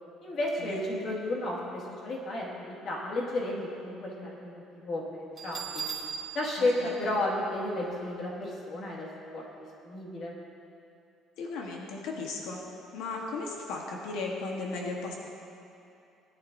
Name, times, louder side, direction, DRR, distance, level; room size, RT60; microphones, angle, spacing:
voice 1, 0.2-5.8 6.3-10.4, left 1 dB, 40° left, -3 dB, 2.0 m, -33 dB
Bell, 5.4-8.1, right 7 dB, 35° right, 1.6 m, -40 dB
voice 2, 6.6-6.9 11.4-12.6 12.9-15.1, left 3 dB, 90° left, -1 dB, 1.3 m, -36 dB
19.0 x 10.5 x 2.7 m, 2.7 s
cardioid pair, 170°, 0 cm